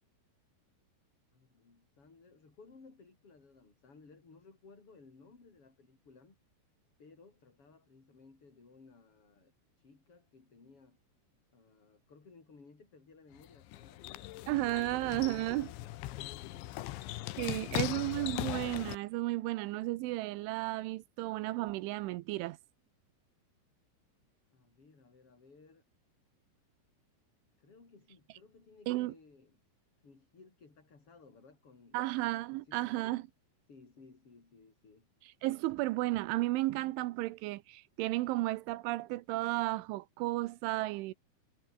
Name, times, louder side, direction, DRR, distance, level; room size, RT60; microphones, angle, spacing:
voice 1, 1.3-6.4 7.0-9.5 9.8-11.0 11.5-16.9 24.5-25.8 27.6-29.6 30.0-32.0 32.3-33.2 33.7-35.1, left 4 dB, 25° left, 5.5 m, -59 dB
sound 1, 13.3-19.0, left 16 dB, 75° left, 3.1 m, -39 dB
voice 2, 14.5-15.7 17.4-22.6 28.9-29.1 31.9-33.2 35.4-41.1, right 18 dB, 80° right, 3.1 m, -33 dB
omnidirectional pair, 5.9 m